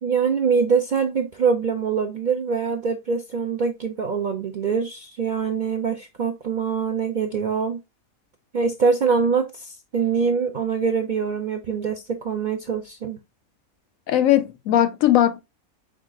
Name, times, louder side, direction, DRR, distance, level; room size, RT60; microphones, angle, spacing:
voice 1, 0.0-7.8 8.5-13.2, right 5 dB, 60° right, 0.5 m, -24 dB
voice 2, 14.1-15.4, left 12 dB, 75° left, 1.0 m, -19 dB
4.9 x 3.7 x 2.3 m
omnidirectional pair, 1.4 m